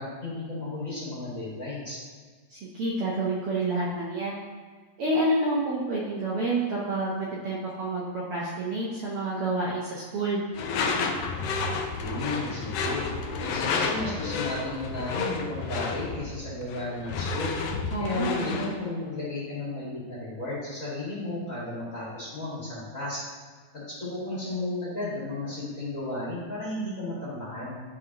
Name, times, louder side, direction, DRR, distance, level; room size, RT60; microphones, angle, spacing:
voice 1, 0.0-2.0 12.0-13.0 13.4-17.6 18.0-23.2 24.0-27.8, left 2 dB, 30° left, -8 dB, 1.9 m, -33 dB
voice 2, 2.5-4.4 5.0-10.4 17.9-18.6, right 2 dB, 65° right, -6 dB, 1.5 m, -28 dB
Door / Screech, 10.5-18.8, left 4 dB, 75° left, 1.5 m, -31 dB
11.5 x 4.0 x 2.9 m, 1.5 s
omnidirectional pair, 3.3 m